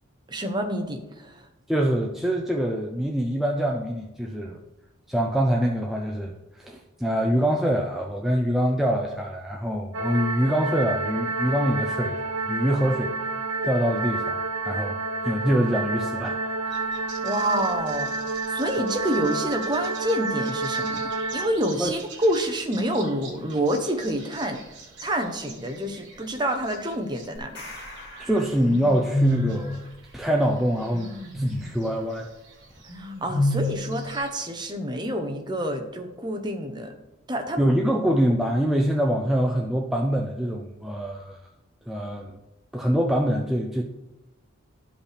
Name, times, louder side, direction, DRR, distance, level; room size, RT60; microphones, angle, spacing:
voice 1, 0.3-1.3 17.2-24.6 25.0-27.6 32.9-36.9 37.3-37.6, right 1 dB, 20° right, 4 dB, 0.8 m, -28 dB
voice 2, 1.7-4.6 5.1-12.2 12.5-13.1 13.6-14.4 14.6-15.0 15.2-16.6 21.8-22.0 28.2-29.8 30.1-32.3 37.6-41.4 41.9-42.3 42.7-43.8, equal, ahead, -1 dB, 0.4 m, -24 dB
sound 1, 9.9-21.5, right 3 dB, 75° right, 1.0 m, -29 dB
sound 2, 16.7-27.4 27.6-34.3, left 1 dB, 55° right, 1.5 m, -35 dB
sound 3, 27.4-29.3, left 2 dB, 55° left, 2.6 m, -44 dB
12.5 x 5.1 x 3.4 m, 0.99 s
head